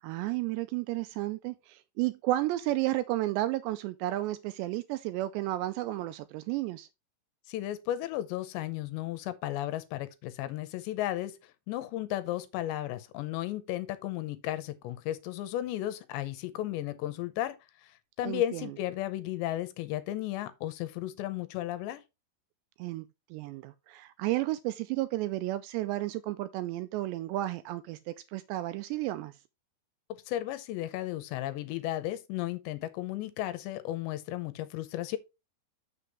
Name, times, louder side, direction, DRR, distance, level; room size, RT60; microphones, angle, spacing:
voice 1, 0.0-6.9 18.2-18.7 22.8-23.1 23.3-29.4, right 16 dB, 85° right, 2.5 m, -32 dB
voice 2, 7.5-17.6 17.8-22.0 30.1-35.2, left 13 dB, 80° left, 2.8 m, -34 dB
7.0 x 6.7 x 3.4 m
omnidirectional pair, 5.3 m